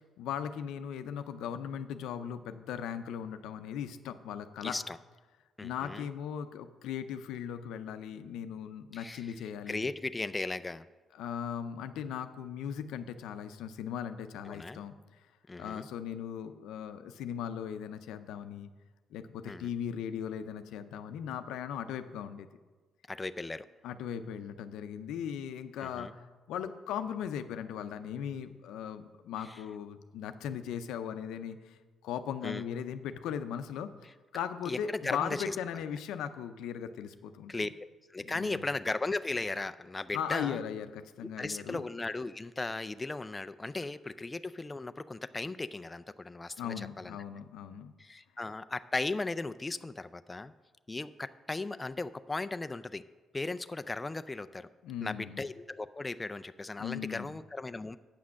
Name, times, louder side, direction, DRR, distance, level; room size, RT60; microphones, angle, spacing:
voice 1, 0.0-4.8 5.6-9.9 11.1-14.9 15.6-18.7 19.1-22.5 23.8-33.9 34.3-37.5 38.2-38.6 40.1-41.8 46.6-47.9 54.8-55.4 56.8-57.3, left 8 dB, 90° left, 10 dB, 0.5 m, -38 dB
voice 2, 4.6-5.0 5.6-6.0 8.9-9.3 9.7-10.8 14.5-14.8 15.5-15.9 19.5-19.7 23.1-23.7 25.8-26.1 32.4-32.6 34.7-35.6 37.5-37.7 38.1-40.6 41.4-47.2 48.0-50.5 50.9-53.0 53.3-54.7 55.0-58.0, left 3 dB, 20° left, 12 dB, 0.3 m, -36 dB
8.4 x 6.0 x 6.3 m, 1.3 s
cardioid pair, 90°, 0 cm